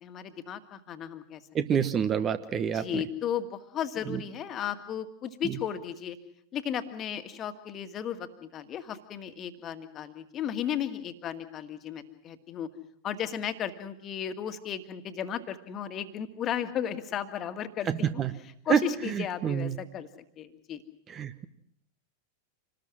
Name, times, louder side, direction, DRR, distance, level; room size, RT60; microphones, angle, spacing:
voice 1, 0.0-1.4 1.7-1.9 2.7-6.2 6.5-12.7 13.0-18.2 18.7-20.1 20.4-20.8, left 9 dB, 30° left, 8 dB, 2.0 m, -35 dB
voice 2, 1.5-3.0 4.1-4.2 5.4-5.6 17.9-18.3 18.7-19.7 21.1-21.4, right 7 dB, 25° right, 11 dB, 1.1 m, -28 dB
27.5 x 19.5 x 6.3 m, 0.70 s
figure-of-eight pair, 90°, 0 cm